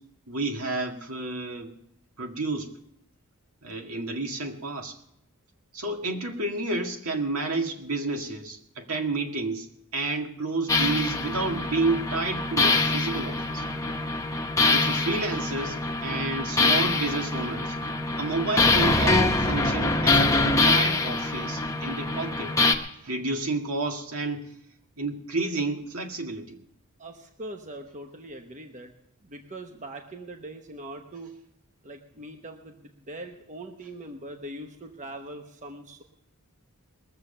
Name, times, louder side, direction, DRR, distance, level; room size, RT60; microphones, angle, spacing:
voice 1, 0.3-1.8 2.2-2.7 3.6-5.0 5.7-9.7 9.9-13.6 14.6-17.8 18.2-22.6 23.0-24.6 25.0-26.6, right 2 dB, 75° right, 3 dB, 2.0 m, -30 dB
sound 1, 10.7-22.7, left 2 dB, 15° left, 1.0 m, -24 dB
voice 2, 27.0-28.9 29.2-31.3 31.8-36.0, right 1 dB, 35° right, 4 dB, 1.0 m, -41 dB
21.0 x 7.3 x 6.7 m, 0.76 s
head